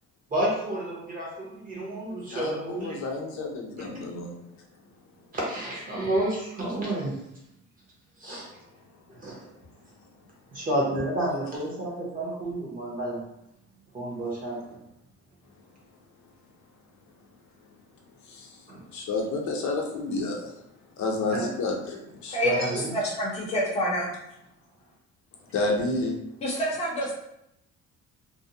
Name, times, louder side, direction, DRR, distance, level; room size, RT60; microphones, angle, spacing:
voice 1, 0.3-3.0 5.3-7.2 8.2-8.4 9.1-9.4 10.5-13.3 13.9-14.8 18.7-18.8 21.3-21.5 22.4-22.9, right 1 dB, 25° right, -5 dB, 0.9 m, -30 dB
voice 2, 2.3-4.3 18.2-18.6 18.9-20.6 21.0-22.4 25.5-26.2, left 2 dB, 65° left, 0 dB, 0.6 m, -30 dB
voice 3, 22.3-24.2 26.4-27.1, equal, 20° left, -4 dB, 0.6 m, -27 dB
2.6 x 2.1 x 2.6 m, 0.81 s
cardioid pair, 160°, 31 cm